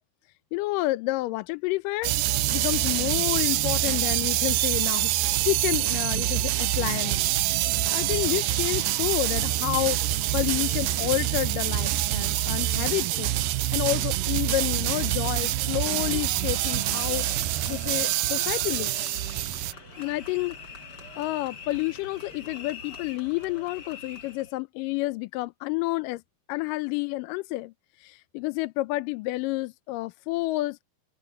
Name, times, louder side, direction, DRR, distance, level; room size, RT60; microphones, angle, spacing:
voice 1, 0.5-5.1 5.4-7.2 7.9-13.3 13.7-17.2 17.7-19.1 20.0-20.6 21.2-26.2 26.5-27.7 28.0-30.8, left 19 dB, 80° left, 2.1 m, -29 dB
sound 1, 2.0-19.7, right 14 dB, 80° right, 2.3 m, -26 dB
Train / Subway metro underground, 14.3-24.5, right 2 dB, 35° right, 7.1 m, -52 dB
sound 2, 15.6-24.5, left 3 dB, 25° left, 5.3 m, -44 dB
omnidirectional pair, 4.2 m